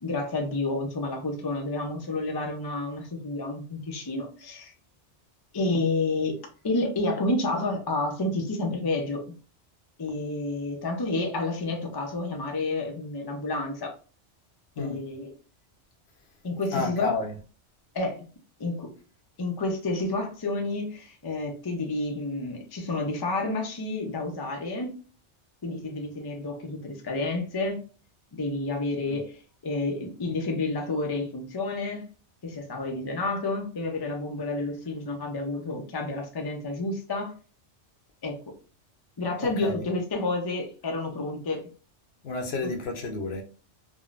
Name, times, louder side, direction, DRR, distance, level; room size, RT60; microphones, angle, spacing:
voice 1, 0.0-4.7 5.5-6.4 6.6-9.2 10.0-13.9 14.8-15.3 16.4-17.2 17.9-18.2 18.6-18.9 19.4-25.0 25.6-27.8 28.3-32.0 32.4-37.3 38.2-38.4 39.2-41.6 42.6-42.7, left 2 dB, 30° left, 0.4 m, -30 dB
voice 2, 16.7-17.3 29.1-29.2 39.4-39.8 42.2-43.4, left 3 dB, 65° left, 0.9 m, -31 dB
3.5 x 2.1 x 2.4 m
omnidirectional pair, 1.2 m